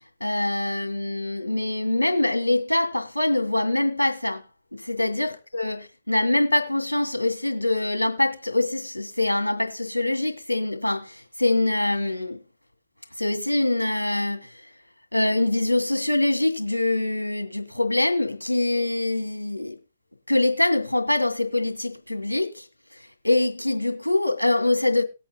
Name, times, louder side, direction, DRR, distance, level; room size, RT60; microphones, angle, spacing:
voice 1, 0.2-4.4 4.7-12.4 13.2-14.5 15.1-19.7 20.3-22.6 23.2-25.0, left 2 dB, 85° left, 2.3 m, -24 dB
19.5 x 8.4 x 2.3 m
figure-of-eight pair, 125°, 0 cm